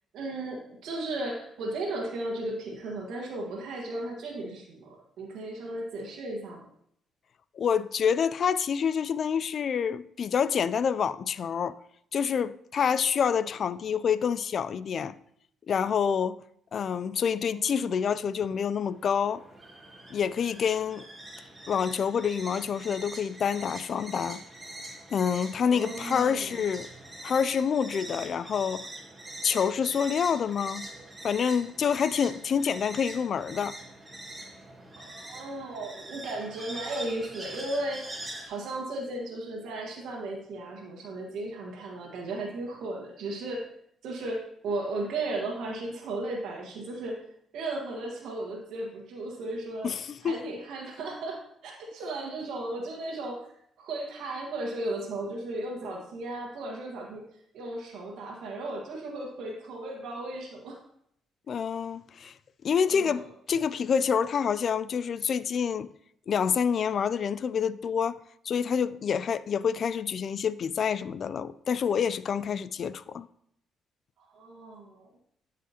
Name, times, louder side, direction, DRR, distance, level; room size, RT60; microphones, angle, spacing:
voice 1, 0.1-6.6 17.6-17.9 25.7-26.6 35.0-43.6 44.0-47.2 47.5-49.9 50.2-53.4 53.8-57.2 57.5-60.8 62.9-63.2 74.3-75.1, right 2 dB, 80° right, 1.5 m, -35 dB
voice 2, 7.5-11.8 12.1-15.2 15.7-16.4 16.7-19.4 20.1-21.1 21.7-24.4 25.1-26.9 27.2-28.9 29.4-30.9 31.2-33.8 49.8-50.4 61.5-62.3 62.6-65.9 66.3-73.3, left 7 dB, 55° left, 0.3 m, -27 dB
sound 1, 18.8-38.5, right 1 dB, 20° right, 2.0 m, -43 dB
12.0 x 5.0 x 2.9 m
cardioid pair, 90°, 0 cm